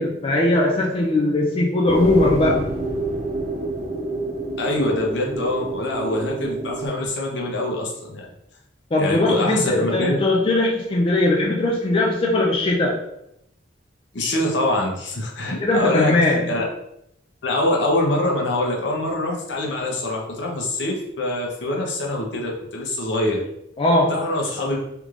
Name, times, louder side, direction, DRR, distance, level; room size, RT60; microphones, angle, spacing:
voice 1, 0.0-2.7 8.9-13.0 15.6-16.5 23.8-24.2, left 2 dB, 30° left, -2 dB, 0.4 m, -19 dB
sound 1, 1.9-6.9, right 2 dB, 35° right, 0.7 m, -27 dB
voice 2, 4.6-8.3 9.0-10.2 14.1-16.1 16.5-16.6 17.4-23.4 24.1-24.8, left 1 dB, 65° left, -1 dB, 0.8 m, -24 dB
3.4 x 3.1 x 2.4 m, 0.80 s
head